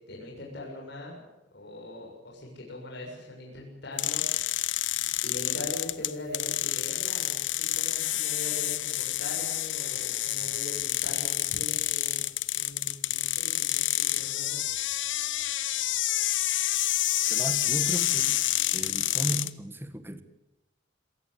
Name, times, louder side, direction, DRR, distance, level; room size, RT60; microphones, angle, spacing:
voice 1, 0.1-1.2 1.5-4.7 5.2-12.2 12.5-14.6, left 2 dB, 65° left, -1 dB, 7.1 m, -41 dB
sound 1, 4.0-19.5, left 14 dB, 90° left, 0.9 m, -28 dB
voice 2, 17.3-18.4 18.7-20.2, right 1 dB, 15° right, 10 dB, 1.8 m, -35 dB
27.0 x 16.5 x 8.4 m, 0.98 s
head